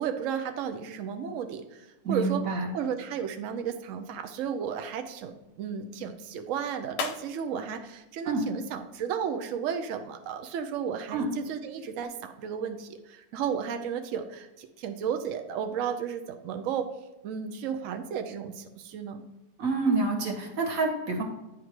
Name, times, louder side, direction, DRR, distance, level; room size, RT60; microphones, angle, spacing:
voice 1, 0.0-2.4 2.7-16.9 17.2-19.2, right 7 dB, 75° right, 6 dB, 0.7 m, -33 dB
voice 2, 2.0-2.7 8.3-8.4 11.1-11.3 19.6-21.2, right 3 dB, 50° right, 1 dB, 1.7 m, -27 dB
sound 1, 3.5-9.3, left 7 dB, 80° left, 1.4 m, -44 dB
9.5 x 3.6 x 4.6 m, 1.0 s
omnidirectional pair, 1.9 m